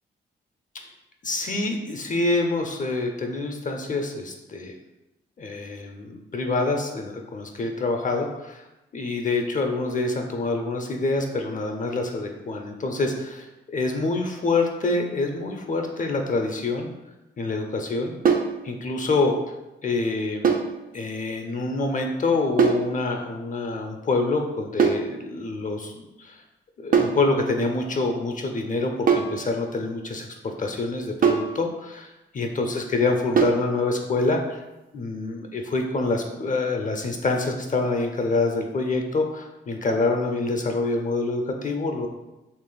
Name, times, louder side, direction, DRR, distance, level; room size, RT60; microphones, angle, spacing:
voice 1, 1.2-4.7 5.4-8.6 8.9-16.9 17.4-18.1 18.6-19.5 19.8-20.5 20.9-26.4 26.8-34.6 34.9-42.1, left 3 dB, 40° left, 3 dB, 0.5 m, -26 dB
sound 1, 18.2-18.6 20.4-20.7 22.6-22.9 24.8-25.1 26.9-27.2 29.1-29.4 31.2-31.5 33.4-33.7, right 6 dB, 45° right, 0.5 m, -20 dB
3.0 x 2.5 x 3.8 m, 1.0 s
supercardioid pair, 60°, 21 cm